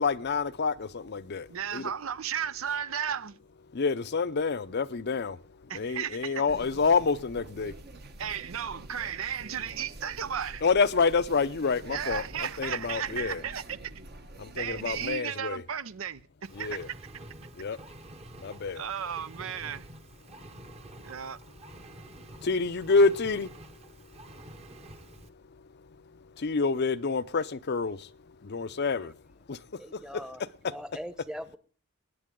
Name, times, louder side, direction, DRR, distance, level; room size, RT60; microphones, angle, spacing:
voice 1, 0.0-1.9 3.7-5.4 5.7-7.7 10.6-13.4 14.4-15.6 16.5-16.9 17.6-17.8 18.4-18.8 22.4-23.5 26.4-28.1 28.4-29.1 29.5-29.6, left 4 dB, 50° left, 0.6 m, -27 dB
voice 2, 1.5-3.3 5.7-6.6 8.2-10.6 11.9-13.8 14.5-16.8 18.7-19.9 21.0-21.4, right 8 dB, 65° right, 0.6 m, -34 dB
sound 1, 6.5-15.2, right 2 dB, 50° right, 1.2 m, -46 dB
Engine, 16.4-25.3, right 1 dB, 30° right, 1.1 m, -48 dB
voice 3, 29.8-30.4 30.6-31.6, equal, 5° right, 1.0 m, -40 dB
21.0 x 9.3 x 3.7 m
head